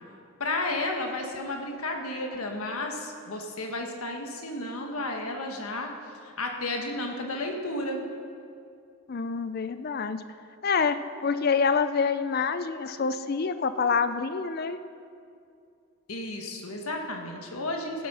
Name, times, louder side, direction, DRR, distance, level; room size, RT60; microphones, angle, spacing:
voice 1, 0.4-5.9 6.2-8.0 16.1-18.1, left 2 dB, 90° left, 2 dB, 1.5 m, -32 dB
voice 2, 9.1-10.2 10.6-14.8, left 5 dB, 45° left, 11 dB, 0.5 m, -27 dB
16.5 x 7.4 x 5.6 m, 2.5 s
head